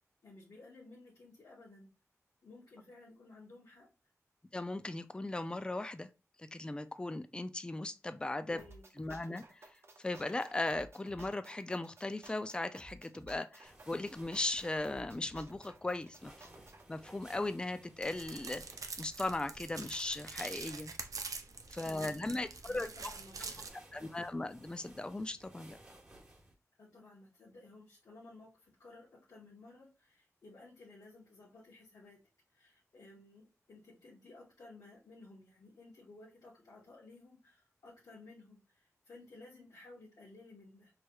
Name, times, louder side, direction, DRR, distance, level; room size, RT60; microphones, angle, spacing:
voice 1, 0.2-1.9 2.4-3.9 8.5-8.9 21.8-23.7 26.8-32.2 32.5-40.9, left 2 dB, 80° left, 1.2 m, -56 dB
voice 2, 4.5-6.1 6.4-8.6 9.0-9.6 10.0-16.5 16.9-18.6 19.0-20.9 21.7-22.9 23.9-25.8, left 2 dB, 15° left, 0.3 m, -38 dB
sound 1, 8.6-16.9, right 2 dB, 45° right, 0.8 m, -56 dB
sound 2, 13.6-26.5, right 1 dB, 20° right, 1.4 m, -60 dB
sound 3, 18.0-23.7, right 4 dB, 80° right, 0.5 m, -45 dB
4.5 x 3.2 x 2.3 m
wide cardioid pair, 75°, 6 cm